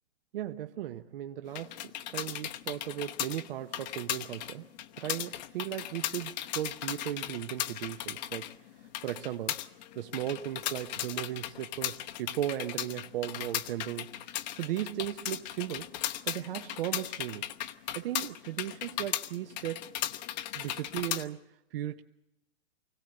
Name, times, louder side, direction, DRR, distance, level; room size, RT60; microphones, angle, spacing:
voice 1, 0.3-4.7 5.0-8.5 8.8-9.6 9.9-14.1 14.5-16.0 16.2-17.5 17.9-19.9 20.5-21.4 21.7-22.0, right 12 dB, 60° right, 1.0 m, -36 dB
sound 1, 1.5-21.2, left 13 dB, 45° left, 1.0 m, -37 dB
25.0 x 16.5 x 7.7 m
hypercardioid pair, 155°, 31 cm